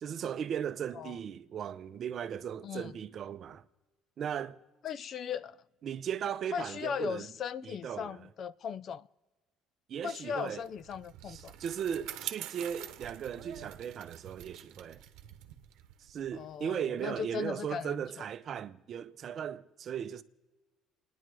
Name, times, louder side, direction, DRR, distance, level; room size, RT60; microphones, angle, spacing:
voice 1, 0.0-3.6 4.2-4.6 5.8-7.3 7.6-8.2 9.9-10.6 11.3-15.0 16.1-20.2, right 8 dB, 45° right, 0.7 m, -37 dB
voice 2, 2.6-2.9 4.8-5.6 6.5-9.1 10.0-11.5 16.3-18.2, left 7 dB, 45° left, 0.4 m, -38 dB
Bicycle, 10.5-17.2, right 13 dB, 80° right, 1.0 m, -46 dB
29.5 x 10.0 x 4.8 m
cardioid pair, 140°, 0 cm